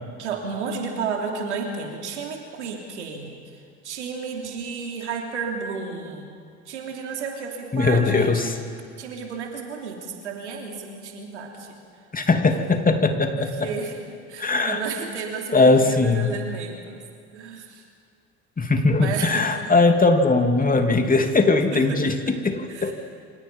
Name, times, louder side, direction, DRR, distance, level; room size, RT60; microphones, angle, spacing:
voice 1, 0.2-3.4 3.8-6.3 6.6-8.6 9.0-11.8 13.3-17.0 17.3-17.8 19.0-19.5 21.7-22.0 22.3-22.4 22.7-22.9, right 5 dB, 90° right, 1 dB, 3.3 m, -32 dB
voice 2, 7.7-8.6 12.1-13.7 14.4-14.8 15.5-16.3 18.6-22.9, left 3 dB, 25° left, 5 dB, 2.9 m, -20 dB
28.5 x 26.0 x 5.7 m, 2.2 s
hypercardioid pair, 65°, 34 cm